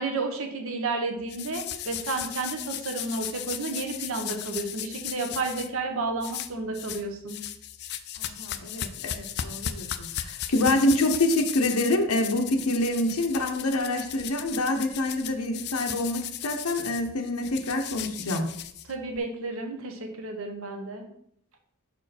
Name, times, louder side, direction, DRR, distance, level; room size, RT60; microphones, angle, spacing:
voice 1, 0.0-7.4 18.9-21.1, right 3 dB, 65° right, 4 dB, 1.0 m, -31 dB
sound 1, 1.3-5.7 6.2-7.0 7.3-19.2, left 11 dB, 45° left, 0.4 m, -36 dB
voice 2, 8.2-18.5, left 1 dB, 80° left, 4 dB, 0.8 m, -26 dB
5.8 x 4.5 x 4.2 m, 0.71 s
head